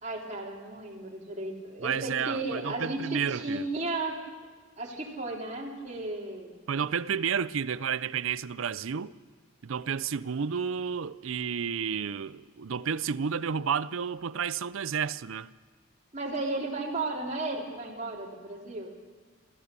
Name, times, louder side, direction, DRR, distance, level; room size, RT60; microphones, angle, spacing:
voice 1, 0.0-4.2 4.8-6.6 16.1-18.9, right 2 dB, 35° right, 3.2 m, -34 dB
voice 2, 1.8-3.6 6.7-9.1 9.6-15.5, right 7 dB, 70° right, 0.5 m, -31 dB
29.0 x 15.0 x 6.9 m
head